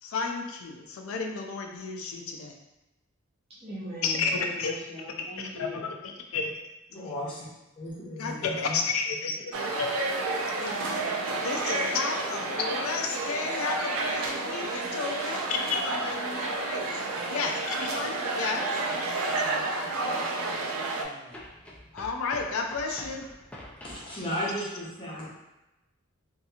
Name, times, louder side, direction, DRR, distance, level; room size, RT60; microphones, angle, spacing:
voice 1, 0.0-2.6 4.0-4.7 5.7-6.6 6.9-7.4 8.2-9.5 9.8-10.1 10.6-11.1 11.4-17.0 17.3-18.6 20.0-20.1 21.9-23.3, left 4 dB, 80° left, 3 dB, 0.4 m, -32 dB
voice 2, 3.5-5.9, left 1 dB, 30° right, -9 dB, 0.6 m, -40 dB
voice 3, 6.9-7.5 7.8-8.8 23.8-25.3, equal, 25° left, -7 dB, 0.8 m, -35 dB
sound 1, 9.5-21.0, right 3 dB, 85° right, 0.4 m, -30 dB
voice 4, 15.0-15.4 17.2-17.6 18.5-21.4, right 1 dB, 45° right, -15 dB, 1.0 m, -43 dB
sound 2, 21.3-24.1, left 1 dB, 5° left, 0.3 m, -46 dB
2.8 x 2.6 x 2.4 m, 0.99 s
head